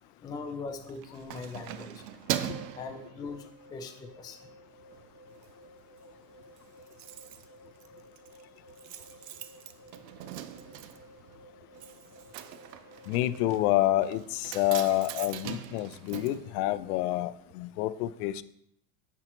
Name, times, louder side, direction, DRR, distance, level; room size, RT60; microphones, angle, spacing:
voice 1, 0.2-2.0 2.8-3.4 3.7-4.4, left 4 dB, 10° left, 0.4 m, -40 dB
Keys jangling, 0.7-3.8 4.2-4.5 4.8-5.5 5.8-5.9 6.1-6.2 6.4-17.2 17.5-17.6, right 11 dB, 80° right, 0.7 m, -41 dB
sound 1, 2.4-14.6, right 1 dB, 30° right, 2.0 m, -55 dB
voice 2, 13.1-18.4, left 15 dB, 65° left, 0.5 m, -28 dB
9.7 x 4.6 x 3.0 m
supercardioid pair, 125°, 49 cm